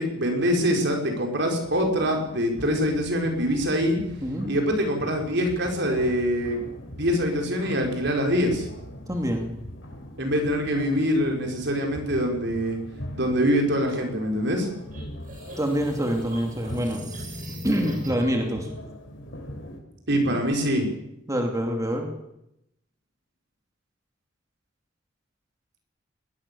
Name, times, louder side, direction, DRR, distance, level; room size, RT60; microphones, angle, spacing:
voice 1, 0.0-4.0 4.5-6.6 6.9-8.7 10.2-12.8 13.1-14.7 20.1-20.9, equal, 65° right, 2 dB, 5.2 m, -24 dB
sound 1, 1.6-19.8, equal, 75° left, 4.6 m, -41 dB
voice 2, 4.2-4.5 9.1-9.5 15.6-17.0 17.6-18.7 21.3-22.1, equal, 20° right, 3 dB, 2.8 m, -26 dB
sound 2, 14.9-18.4, equal, 45° right, 7.5 m, -38 dB
21.0 x 19.5 x 7.1 m, 0.82 s
head